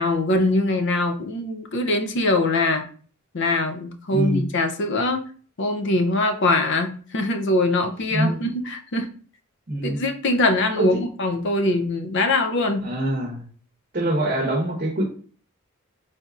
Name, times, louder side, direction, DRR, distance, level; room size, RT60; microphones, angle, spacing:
voice 1, 0.0-2.8 3.3-5.2 5.6-9.1 9.8-12.9, left 2 dB, 55° left, 0.5 m, -22 dB
voice 2, 4.1-4.4 8.1-8.4 9.7-10.0 10.8-11.0 12.8-13.4 13.9-15.0, right 1 dB, 40° right, 0.8 m, -24 dB
4.1 x 3.4 x 2.4 m
head